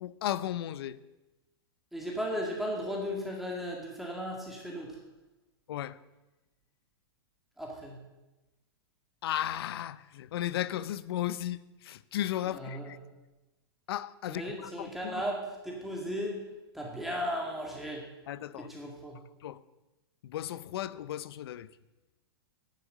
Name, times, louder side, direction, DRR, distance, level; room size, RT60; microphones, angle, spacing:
voice 1, 0.0-1.0 5.7-6.0 9.2-13.0 13.9-15.2 18.3-18.7 19.4-19.6 20.2-21.7, left 12 dB, 65° left, 0.6 m, -35 dB
voice 2, 1.9-5.0 7.6-8.0 12.5-12.9 14.3-16.4 16.7-18.0 18.5-19.2, equal, ahead, 2.0 m, -36 dB
10.5 x 7.3 x 7.9 m
hypercardioid pair, 130°, 14 cm